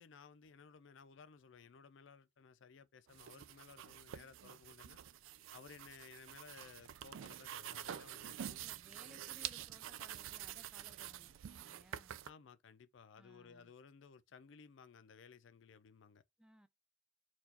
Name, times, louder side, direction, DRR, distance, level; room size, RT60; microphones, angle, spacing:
voice 1, 0.0-5.0 5.5-8.6 12.2-16.2, left 5 dB, 70° left, 0.5 m, -58 dB
sound 1, 3.1-12.3, right 11 dB, 90° right, 0.3 m, -48 dB
voice 2, 8.6-12.2 13.1-13.7 16.4-16.7, right 1 dB, 5° right, 0.3 m, -63 dB
4.5 x 2.4 x 4.1 m
head